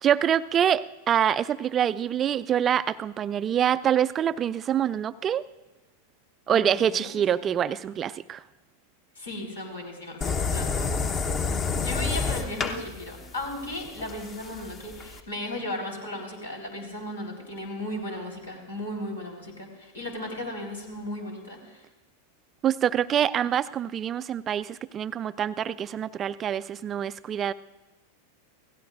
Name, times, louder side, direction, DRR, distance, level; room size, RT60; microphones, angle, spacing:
voice 1, 0.0-5.4 6.5-8.4 22.6-27.5, right 9 dB, 25° right, 16 dB, 0.4 m, -25 dB
voice 2, 6.5-7.6 9.2-11.0 11.5-21.8, left 1 dB, 75° left, 0 dB, 4.1 m, -36 dB
sound 1, 10.2-15.2, left 4 dB, 25° left, 1.0 m, -29 dB
28.0 x 17.0 x 2.6 m, 1.1 s
figure-of-eight pair, 90°, 0 cm